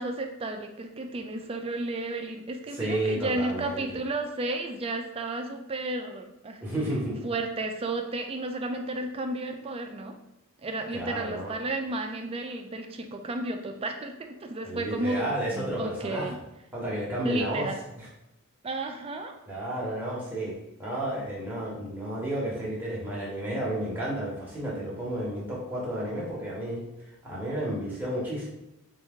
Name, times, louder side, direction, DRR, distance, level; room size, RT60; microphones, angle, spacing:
voice 1, 0.0-6.6 7.2-10.2 10.6-16.4 17.2-17.7 18.6-19.4, right 2 dB, 25° right, 4 dB, 0.3 m, -33 dB
voice 2, 2.7-3.8 6.6-7.2 10.9-11.5 14.6-16.3 16.7-17.7 18.0-18.1 19.5-26.8 27.2-28.5, right 1 dB, 10° right, -6 dB, 1.1 m, -32 dB
3.4 x 2.9 x 3.6 m, 0.90 s
head